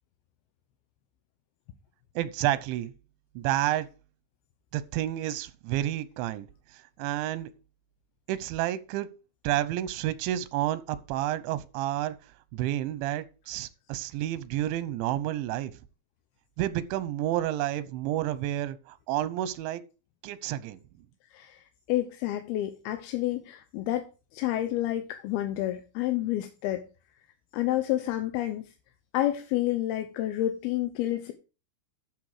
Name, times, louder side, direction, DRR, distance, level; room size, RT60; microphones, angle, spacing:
voice 1, 2.2-2.9 3.4-3.9 4.7-7.5 8.3-9.1 9.4-12.2 12.5-15.7 16.6-19.8 20.2-20.8, right 13 dB, 90° right, 3.1 m, -30 dB
voice 2, 21.9-24.1 24.3-26.8 27.5-28.7 29.1-31.3, left 14 dB, 75° left, 2.5 m, -29 dB
12.5 x 6.6 x 4.9 m
omnidirectional pair, 5.1 m